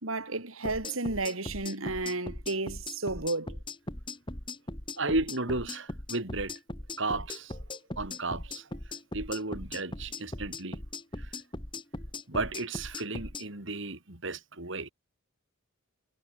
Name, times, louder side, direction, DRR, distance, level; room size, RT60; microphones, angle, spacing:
voice 1, 0.0-3.6, right 2 dB, 75° right, 3.7 m, -32 dB
sound 1, 0.6-13.5, left 2 dB, 25° left, 3.3 m, -39 dB
voice 2, 5.0-6.5 7.0-7.6 8.0-8.6 9.1-10.8 11.2-11.3 12.3-14.9, right 2 dB, 60° right, 3.0 m, -33 dB
head